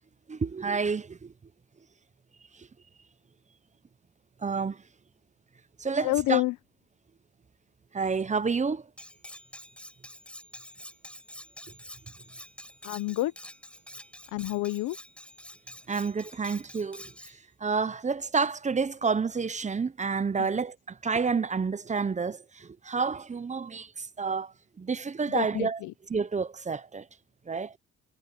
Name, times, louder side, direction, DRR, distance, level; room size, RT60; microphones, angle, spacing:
voice 1, 0.3-1.3 2.6-2.7 4.4-4.8 5.8-6.4 7.9-8.9 15.9-25.8 26.1-27.1 27.5-27.8, right 5 dB, 25° right, 0.7 m, -29 dB
voice 2, 6.0-6.6 12.8-13.3 14.3-15.0 20.4-20.5 25.3-25.9, left 18 dB, 90° left, 0.9 m, -28 dB
Cutlery silverware, 9.0-17.4, left 1 dB, 5° left, 4.9 m, -47 dB
cardioid pair, 90°, 30 cm